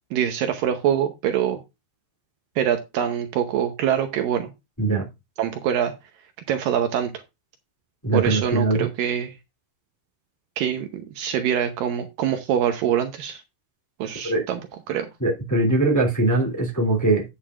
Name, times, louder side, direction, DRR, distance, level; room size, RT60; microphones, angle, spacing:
voice 1, 0.1-1.6 2.6-4.5 5.4-5.9 6.5-7.1 8.1-9.3 10.6-13.4 14.0-14.6 14.9-15.1, right 9 dB, 75° right, 2.3 m, -24 dB
voice 2, 8.0-8.9 14.2-14.4 15.2-17.2, right 2 dB, 5° left, 1.9 m, -21 dB
9.4 x 8.5 x 2.4 m
omnidirectional pair, 4.4 m